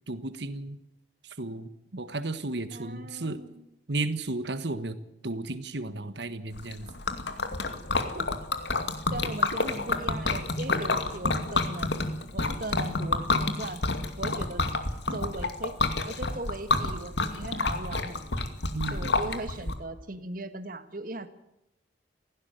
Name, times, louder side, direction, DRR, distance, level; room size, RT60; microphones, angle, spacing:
voice 1, 0.1-0.8 1.2-3.4 3.9-5.0 5.2-6.9 18.7-19.4, right 2 dB, 70° right, 12 dB, 1.4 m, -34 dB
voice 2, 2.7-3.6 8.0-8.3 9.1-12.1 12.3-13.8 14.2-14.6 15.1-15.8 16.0-18.2 18.9-21.3, right 2 dB, 50° right, 11 dB, 1.8 m, -38 dB
Liquid, 6.6-19.7, left 3 dB, 75° left, 2.4 m, -29 dB
18.0 x 16.0 x 9.2 m, 0.85 s
head